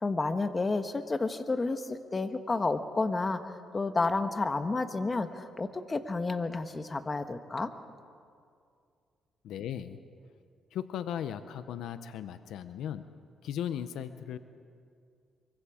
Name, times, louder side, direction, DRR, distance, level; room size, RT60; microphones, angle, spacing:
voice 1, 0.0-7.7, left 3 dB, 25° left, 8 dB, 1.3 m, -31 dB
voice 2, 9.4-10.0 10.7-14.4, left 9 dB, 80° left, 11 dB, 0.7 m, -37 dB
24.5 x 23.0 x 5.0 m, 2.3 s
cardioid pair, 90°, 0 cm